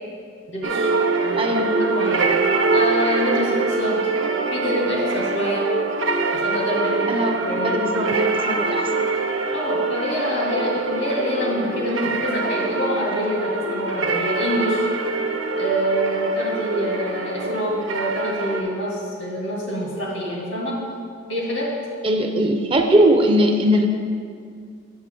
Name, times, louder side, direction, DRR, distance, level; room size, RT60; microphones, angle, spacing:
voice 1, 0.5-0.9 1.2-2.3 2.7-4.1 4.5-5.6 6.3-7.8 9.5-14.9 15.6-20.7 21.3-21.7, equal, 85° left, -4 dB, 2.2 m, -26 dB
sound 1, 0.6-18.6, right 3 dB, 75° right, 0.6 m, -24 dB
voice 2, 1.4-1.7 7.1-7.4 7.6-9.0 22.0-23.9, right 1 dB, 25° right, 4 dB, 0.4 m, -20 dB
8.0 x 7.1 x 3.7 m, 2.2 s
head